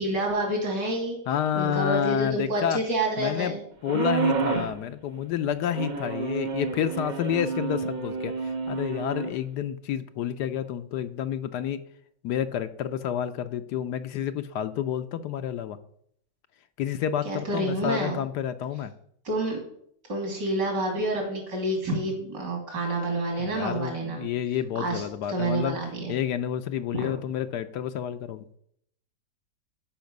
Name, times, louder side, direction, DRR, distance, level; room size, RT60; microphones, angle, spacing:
voice 1, 0.0-1.2 1.5-3.6 17.2-18.2 19.2-19.6 20.1-24.2 24.8-26.1 27.0-27.1, right 1 dB, 65° right, 1 dB, 3.2 m, -28 dB
voice 2, 1.3-2.8 3.2-3.5 3.8-11.8 12.2-15.8 16.8-18.9 23.4-25.8 26.1-28.4, left 9 dB, 75° left, 10 dB, 1.1 m, -29 dB
sound 1, 3.8-4.8 5.7-9.3, right 4 dB, 50° right, 0.5 m, -29 dB
11.5 x 5.6 x 5.3 m, 0.69 s
omnidirectional pair, 1.9 m